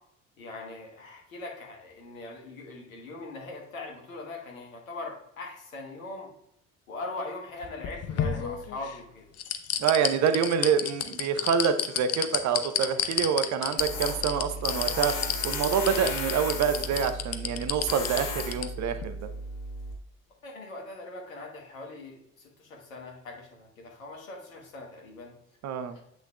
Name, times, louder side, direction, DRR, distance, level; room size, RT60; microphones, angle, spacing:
voice 1, 0.4-6.3 6.9-9.3 20.4-25.3 25.9-26.0, left 2 dB, 75° left, 0 dB, 1.4 m, -41 dB
sound 1, 7.6-8.9 9.4-18.7 19.0-19.1, left 10 dB, 40° left, 0.7 m, -29 dB
voice 2, 9.8-15.1 15.4-19.2 25.6-26.0, right 7 dB, 45° right, 9 dB, 0.7 m, -26 dB
Tools, 13.8-19.9, left 2 dB, 60° left, 1.6 m, -35 dB
7.9 x 6.5 x 2.2 m, 0.78 s
figure-of-eight pair, 50°, 41 cm